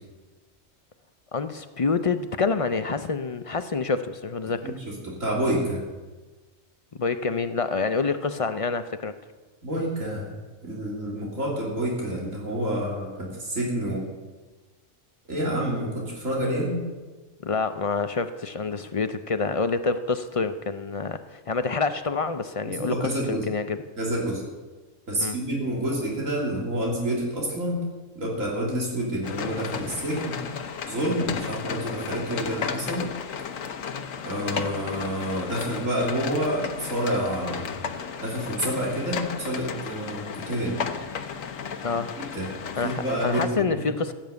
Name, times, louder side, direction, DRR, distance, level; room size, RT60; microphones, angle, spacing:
voice 1, 1.3-4.8 7.0-9.1 17.4-23.8 25.2-25.4 41.8-42.2 42.8-44.1, left 4 dB, 45° left, 10 dB, 0.4 m, -27 dB
voice 2, 4.6-5.9 9.6-10.3 10.6-14.1 15.3-16.8 22.6-23.5 24.0-24.4 25.1-27.8 28.2-30.4 30.9-33.0 34.2-37.7 38.2-40.8 42.3-42.5 42.8-44.0, right 1 dB, 80° right, -3 dB, 3.5 m, -28 dB
sound 1, 29.2-43.5, left 6 dB, 85° left, 1.3 m, -34 dB
15.5 x 7.3 x 8.1 m, 1.3 s
omnidirectional pair, 1.3 m